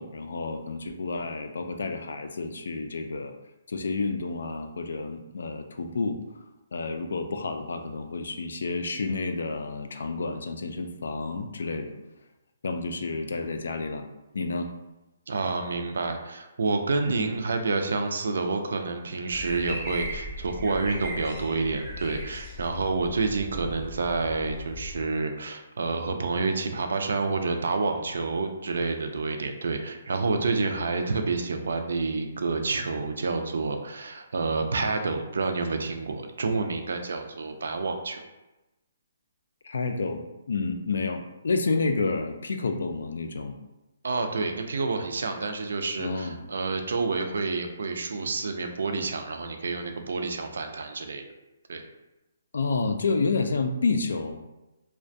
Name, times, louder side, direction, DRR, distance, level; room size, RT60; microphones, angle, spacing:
voice 1, 0.0-3.3 3.7-6.2 6.7-11.9 12.6-14.1 14.3-14.7 17.0-17.3 39.6-43.6 46.0-46.4 52.5-54.5, left 3 dB, 80° left, 7 dB, 0.3 m, -30 dB
voice 2, 15.3-38.2 44.0-51.2 51.7-51.8, right 3 dB, 75° right, 6 dB, 0.3 m, -29 dB
sound 1, 19.3-25.0, left 1 dB, 15° right, 0.5 m, -39 dB
2.4 x 2.1 x 2.6 m, 1.0 s
hypercardioid pair, 175°, 0 cm